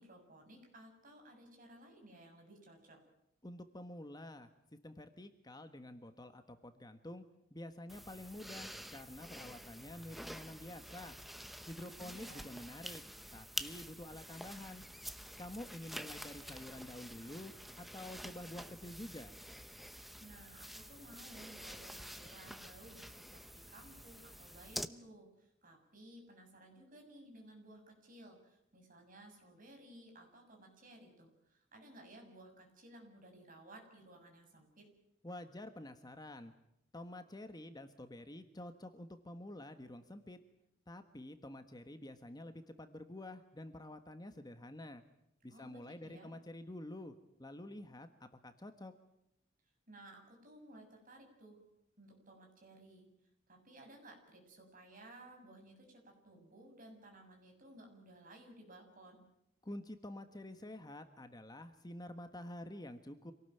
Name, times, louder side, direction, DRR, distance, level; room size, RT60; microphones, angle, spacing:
voice 1, 0.0-3.0 11.8-12.5 20.2-34.9 45.5-46.3 49.9-51.6 52.0-53.1 53.5-59.2, right 1 dB, 45° right, 3 dB, 7.4 m, -57 dB
voice 2, 3.4-4.5 4.8-7.2 7.5-11.2 11.7-13.0 13.3-14.8 15.4-19.3 35.2-36.5 36.9-40.4 40.9-45.0 45.4-48.9 59.6-63.3, left 1 dB, 20° left, 8 dB, 1.3 m, -49 dB
sound 1, 7.9-24.9, equal, ahead, 0.9 m, -48 dB
27.0 x 18.5 x 9.2 m, 0.82 s
head